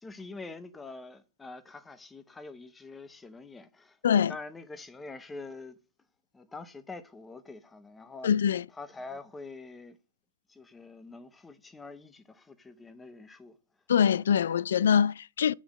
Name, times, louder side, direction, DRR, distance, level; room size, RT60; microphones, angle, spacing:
voice 1, 0.0-5.8 6.3-8.3 8.7-10.0 10.5-13.6, left 3 dB, 5° left, 0.6 m, -45 dB
voice 2, 8.2-8.6 13.9-15.5, left 8 dB, 70° left, 0.3 m, -24 dB
10.5 x 5.0 x 6.3 m
hypercardioid pair, 175°, 0 cm